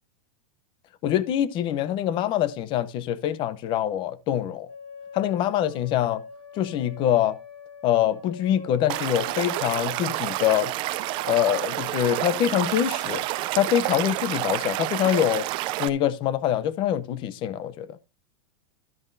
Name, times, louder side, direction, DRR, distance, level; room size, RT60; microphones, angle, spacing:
voice 1, 1.0-4.7 5.1-6.2 6.6-7.4 7.8-10.7 11.3-13.2 13.5-15.4 15.8-18.0, left 11 dB, 30° left, 0.8 m, -24 dB
sound 1, 4.6-13.6, left 4 dB, 45° left, 2.9 m, -44 dB
Stream / Liquid, 8.9-15.9, right 18 dB, 30° right, 0.5 m, -29 dB
13.0 x 8.6 x 2.7 m
supercardioid pair, 160°, 18 cm